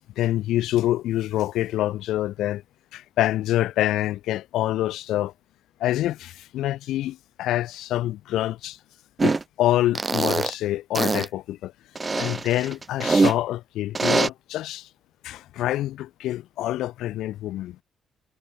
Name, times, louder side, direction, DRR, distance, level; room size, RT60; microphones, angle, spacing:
voice 1, 0.2-2.6 2.9-5.3 5.8-8.8 9.2-11.7 12.2-14.9 15.2-17.8, left 14 dB, 80° left, 2.2 m, -26 dB
sound 1, 9.2-9.4 9.9-10.5 10.9-11.3 12.0-13.3 13.9-14.3, right 3 dB, 20° right, 2.1 m, -22 dB
cardioid pair, 125°, 0 cm